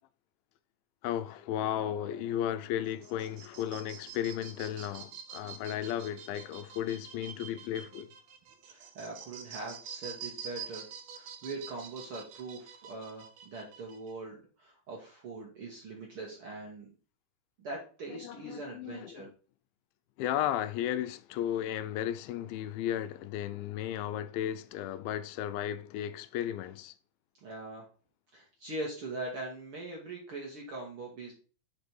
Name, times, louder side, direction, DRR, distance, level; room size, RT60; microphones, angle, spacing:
voice 1, 1.0-8.1 18.1-19.3 20.2-26.9, left 11 dB, 85° left, 2.4 m, -34 dB
sound 1, 2.9-14.1, right 7 dB, 75° right, 1.5 m, -47 dB
voice 2, 8.6-16.9 17.6-19.3 27.4-27.9 28.3-31.3, right 2 dB, 60° right, 1.5 m, -42 dB
5.5 x 5.2 x 4.5 m
omnidirectional pair, 4.2 m